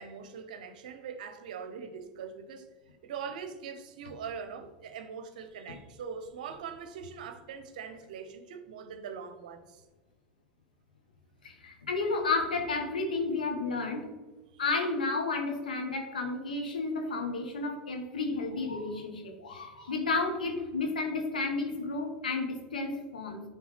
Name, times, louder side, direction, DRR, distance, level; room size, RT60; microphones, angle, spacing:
voice 1, 0.0-2.6 3.0-9.8 14.5-14.6, right 6 dB, 70° right, 8 dB, 0.8 m, -42 dB
voice 2, 11.4-14.1 14.6-23.4, left 3 dB, 90° left, 2 dB, 1.2 m, -32 dB
9.8 x 3.5 x 3.2 m, 1.2 s
hypercardioid pair, 90°, 5 cm